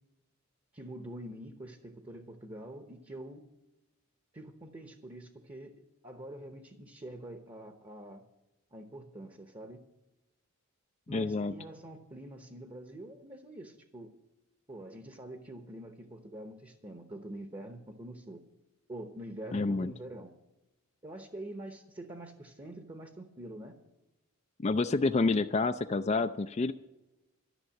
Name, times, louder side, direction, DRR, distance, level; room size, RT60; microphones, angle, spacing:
voice 1, 0.7-3.4 4.3-8.2 8.7-9.8 11.1-14.2 14.7-18.4 18.9-20.3 21.0-23.8, right 1 dB, 25° right, 6 dB, 0.9 m, -45 dB
voice 2, 11.1-11.5 19.5-19.9 24.6-26.7, left 3 dB, 30° left, 10 dB, 0.3 m, -28 dB
13.0 x 6.8 x 10.0 m, 1.0 s
head